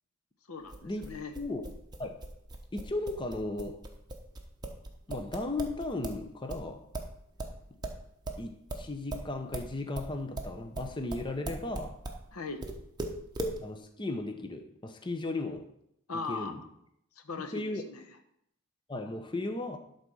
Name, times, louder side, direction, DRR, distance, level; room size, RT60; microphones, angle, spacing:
voice 1, 0.5-1.3 12.3-12.6 16.1-16.6 17.2-18.0, left 4 dB, 85° left, 8 dB, 1.0 m, -39 dB
sound 1, 0.7-6.2 6.5-12.2 12.6-13.6, right 2 dB, 20° right, 1.0 m, -38 dB
voice 2, 2.7-3.8 5.1-6.9 8.4-12.0 13.6-15.7 16.3-16.6 17.5-17.8 18.9-19.8, left 2 dB, 20° left, 6 dB, 0.7 m, -36 dB
12.0 x 4.1 x 6.2 m, 0.75 s
head